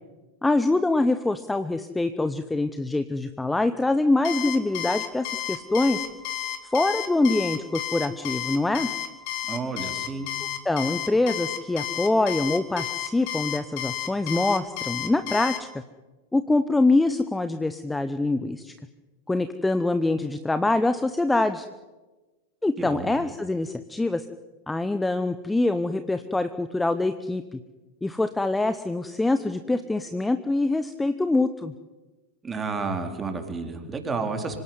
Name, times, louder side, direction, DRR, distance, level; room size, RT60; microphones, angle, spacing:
voice 1, 0.4-6.0 6.7-8.9 10.6-15.7 16.3-18.7 19.3-21.7 22.6-24.3 24.7-27.6 28.0-31.7, left 2 dB, 5° left, 11 dB, 0.9 m, -24 dB
Alarm, 4.2-15.6, left 12 dB, 45° left, 2.7 m, -31 dB
voice 2, 9.5-10.3 22.8-23.1 32.4-34.6, right 4 dB, 15° right, 5 dB, 3.9 m, -31 dB
25.5 x 17.5 x 9.6 m, 1.2 s
figure-of-eight pair, 90°, 0 cm